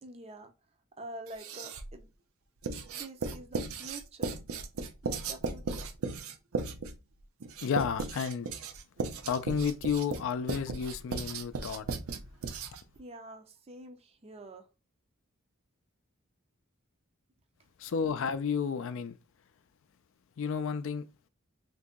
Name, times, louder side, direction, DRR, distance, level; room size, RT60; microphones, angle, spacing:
voice 1, 0.0-0.5 1.0-2.1 2.9-4.4 5.0-5.9 13.0-14.7, right 1 dB, 30° right, 0.5 m, -47 dB
Writing, 1.3-2.0 2.6-13.0, right 4 dB, 75° right, 0.6 m, -36 dB
voice 2, 7.6-8.5 9.2-11.9 17.8-19.2 20.4-21.0, left 6 dB, 65° left, 0.4 m, -31 dB
2.8 x 2.6 x 3.6 m
head